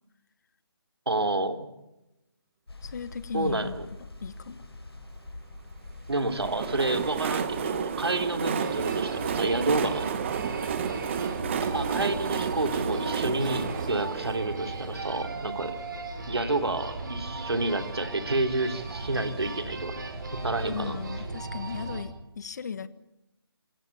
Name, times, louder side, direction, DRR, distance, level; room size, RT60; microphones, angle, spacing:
voice 1, 1.0-1.7 3.3-3.8 6.1-10.0 11.6-15.7 16.3-20.0 20.3-21.0, right 2 dB, 80° right, 6 dB, 3.4 m, -29 dB
sound 1, 2.7-21.9, left 2 dB, 75° left, 7.5 m, -47 dB
voice 2, 2.8-3.8 4.2-4.6 20.7-22.9, left 6 dB, 45° left, 15 dB, 1.4 m, -36 dB
Train, 6.1-15.8, right 7 dB, 30° right, 1.4 m, -32 dB
sound 2, 8.6-22.0, right 3 dB, 50° right, 5.5 m, -37 dB
27.5 x 16.0 x 9.0 m, 0.94 s
figure-of-eight pair, 160°, 13 cm